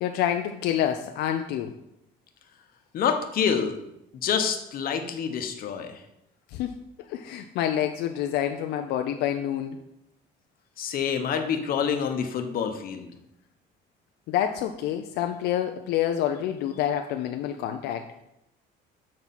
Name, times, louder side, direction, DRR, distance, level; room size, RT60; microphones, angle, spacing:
voice 1, 0.0-1.7 6.5-6.7 7.1-9.8 14.3-18.1, left 10 dB, 85° left, 5 dB, 0.5 m, -27 dB
voice 2, 2.9-3.8 4.2-6.0 10.8-13.1, left 7 dB, 60° left, 6 dB, 0.9 m, -27 dB
7.5 x 4.3 x 4.1 m, 0.84 s
cardioid pair, 110°, 17 cm